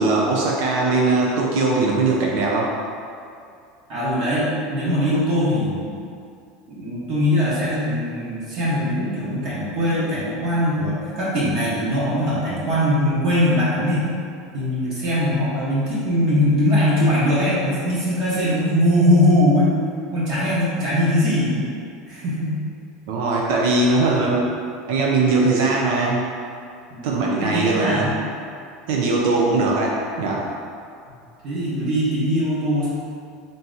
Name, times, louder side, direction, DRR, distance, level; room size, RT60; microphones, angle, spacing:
voice 1, 0.0-2.7 23.1-24.4 24.9-26.3 27.0-28.1 28.9-30.5, right 3 dB, 70° right, -2 dB, 0.5 m, -20 dB
voice 2, 3.9-5.8 6.7-14.0 14.5-19.7 20.1-21.7 22.1-22.6 26.9-28.2 31.4-32.9, left 1 dB, 45° right, -9 dB, 1.1 m, -21 dB
3.7 x 2.8 x 3.8 m, 2.4 s
supercardioid pair, 165°, 0 cm